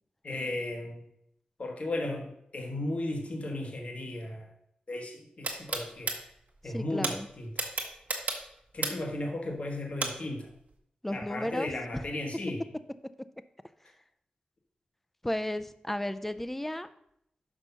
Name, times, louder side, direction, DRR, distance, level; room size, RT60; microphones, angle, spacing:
voice 1, 0.2-1.0 1.6-4.5 4.9-6.2 6.6-7.5 8.7-10.5 11.1-12.6, left 1 dB, 50° left, 2 dB, 1.2 m, -35 dB
sound 1, 5.4-6.1 7.0-7.1 7.6-9.1 10.0-10.1, right 3 dB, 65° right, 1.3 m, -31 dB
voice 2, 6.6-7.3 11.0-11.7 11.9-12.0 15.2-16.9, left 1 dB, 10° left, 13 dB, 0.4 m, -33 dB
6.2 x 5.4 x 5.5 m, 0.74 s
wide cardioid pair, 105°, 3 cm